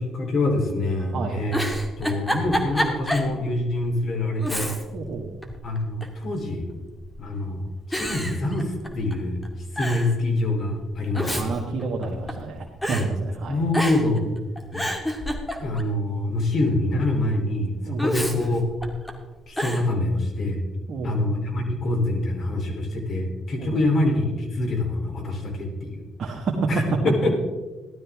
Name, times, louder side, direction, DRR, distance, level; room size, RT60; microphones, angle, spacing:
voice 1, 0.0-1.6 2.0-4.7 5.6-6.7 7.2-9.4 9.7-11.5 12.9-13.1 13.5-14.3 14.7-14.8 15.6-18.6 19.5-20.6 21.0-26.1 26.7-27.3, left 2 dB, 55° left, 2 dB, 3.4 m, -25 dB
Giggle, 1.5-3.3 3.7-3.8 4.4-5.1 5.4-6.2 7.0-7.4 7.9-9.1 9.4-9.5 9.8-10.1 10.9-12.5 12.8-13.1 13.7-14.2 14.6-15.9 18.0-19.1 19.6-19.9, equal, 10° left, 2.3 m, -28 dB
voice 2, 4.9-5.3 11.3-13.6 17.8-18.1 20.9-21.2 23.6-23.8 26.2-26.6, right 4 dB, 55° right, -1 dB, 1.7 m, -30 dB
16.0 x 12.5 x 3.6 m, 1.3 s
supercardioid pair, 70°, 0 cm